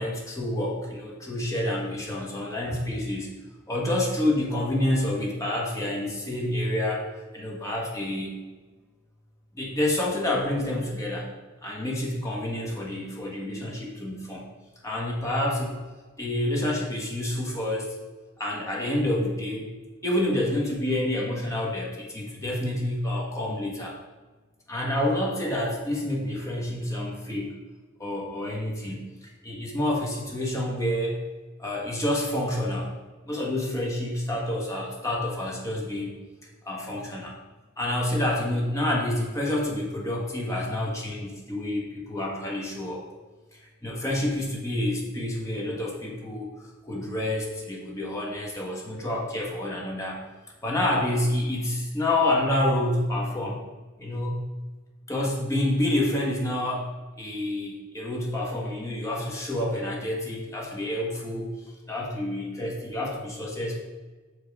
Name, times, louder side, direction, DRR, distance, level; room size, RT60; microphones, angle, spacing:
voice 1, 0.0-3.3 3.7-7.1 7.3-8.4 9.5-11.3 11.6-14.4 14.8-15.8 16.2-18.0 18.4-19.7 20.0-24.0 24.7-27.5 28.0-31.2 31.6-32.9 33.3-36.1 36.6-37.4 37.8-43.0 43.5-46.5 46.8-50.2 50.6-53.6 54.0-54.4 55.1-56.9 57.2-61.5 61.9-63.7, left 1 dB, 15° left, -3 dB, 1.4 m, -28 dB
6.2 x 5.2 x 4.8 m, 1.3 s
head